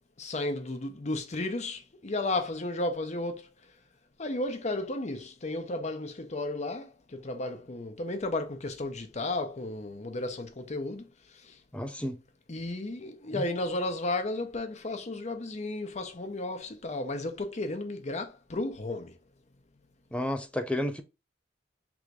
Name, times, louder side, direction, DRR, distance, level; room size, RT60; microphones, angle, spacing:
voice 1, 0.2-3.5 4.2-11.1 11.4-11.6 12.5-19.2, left 2 dB, 40° left, 0.7 m, -33 dB
voice 2, 11.7-12.2 13.3-13.4 20.1-21.0, left 1 dB, 5° left, 0.5 m, -31 dB
3.5 x 2.6 x 4.6 m
head